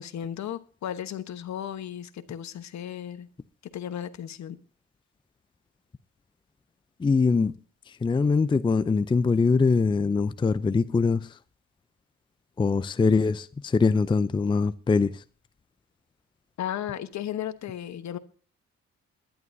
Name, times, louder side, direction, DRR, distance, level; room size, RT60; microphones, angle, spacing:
voice 1, 0.0-3.3 3.7-4.6 16.6-18.2, left 10 dB, 65° left, 1.2 m, -35 dB
voice 2, 7.0-7.5 8.0-11.3 12.6-15.1, left 4 dB, 15° left, 0.5 m, -23 dB
21.5 x 11.0 x 2.7 m
cardioid pair, 90°, 30 cm